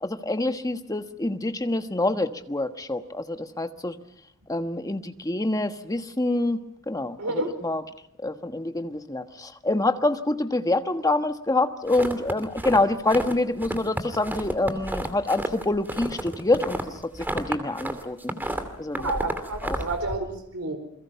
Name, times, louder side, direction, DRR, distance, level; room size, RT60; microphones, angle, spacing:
voice 1, 0.0-4.0 4.5-6.6 6.9-7.8 8.2-16.8 17.3-18.3 18.8-19.1 19.6-19.8, left 2 dB, 15° left, 7 dB, 1.3 m, -26 dB
voice 2, 7.2-7.5 19.0-20.8, right 2 dB, 70° right, 6 dB, 4.5 m, -30 dB
sound 1, 11.9-13.3 13.6-17.9 18.2-20.2, right 1 dB, 10° right, 2.5 m, -31 dB
29.0 x 22.0 x 5.8 m, 0.77 s
head